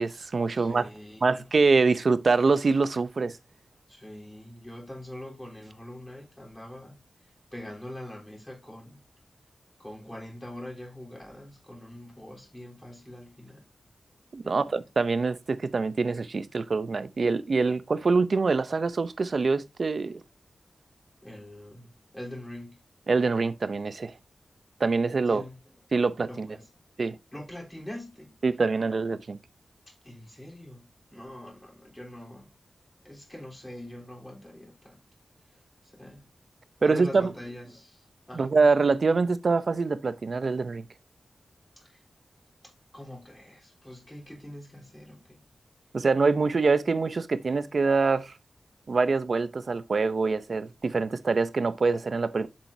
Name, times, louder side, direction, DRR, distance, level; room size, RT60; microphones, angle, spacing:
voice 1, 0.0-0.8 1.2-3.4 14.3-20.2 23.1-24.1 24.8-25.4 25.9-26.5 27.0-27.2 28.4-29.4 36.8-37.3 38.3-40.8 45.9-48.3 48.9-52.5, right 4 dB, 55° right, 0.6 m, -25 dB
voice 2, 0.5-1.4 3.9-7.0 7.2-9.0 9.8-13.6 14.4-14.8 21.2-22.8 25.3-25.6 26.3-26.7 27.3-28.3 29.9-32.5 33.0-35.0 35.5-35.6 35.9-36.2 36.8-38.6 41.8-42.0 42.6-45.4, left 1 dB, 10° left, 3.6 m, -43 dB
7.6 x 7.2 x 2.7 m
wide cardioid pair, 90°, 0 cm